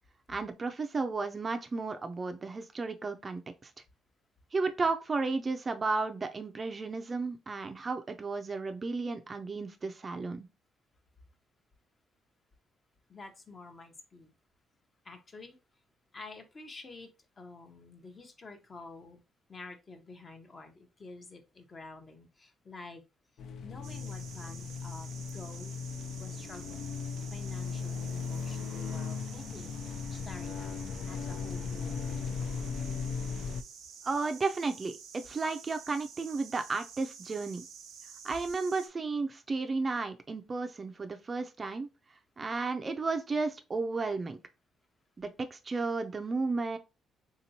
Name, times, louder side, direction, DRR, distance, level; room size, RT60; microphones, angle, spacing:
voice 1, 0.3-3.7 4.5-10.5 34.0-37.6 38.2-41.9 42.4-44.4 45.2-46.8, right 3 dB, 35° right, 0.4 m, -33 dB
voice 2, 13.1-14.3 15.0-15.6 16.1-17.1 17.4-19.2 19.5-23.0 23.6-25.8 26.2-32.2, left 3 dB, 35° left, 0.7 m, -49 dB
sound 1, 23.4-33.6, left 5 dB, 65° left, 0.3 m, -37 dB
sound 2, 23.8-38.9, right 6 dB, 80° right, 0.6 m, -50 dB
3.7 x 2.9 x 2.7 m
cardioid pair, 90°, 0 cm